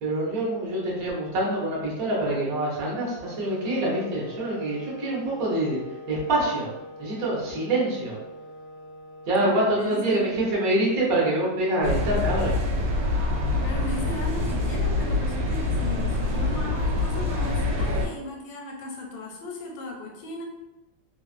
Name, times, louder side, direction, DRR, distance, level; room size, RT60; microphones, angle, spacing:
voice 1, 0.0-5.8 6.1-6.7 7.0-8.2 9.3-12.6, right 1 dB, 55° right, -6 dB, 1.3 m, -25 dB
sound 1, 3.2-11.2, left 1 dB, 60° left, 0.5 m, -43 dB
voice 2, 9.4-10.3 13.6-20.4, left 1 dB, 85° left, 0 dB, 1.4 m, -36 dB
sound 2, 11.8-18.1, left 2 dB, 75° right, 1.3 m, -25 dB
3.4 x 2.4 x 2.4 m, 1.0 s
omnidirectional pair, 2.1 m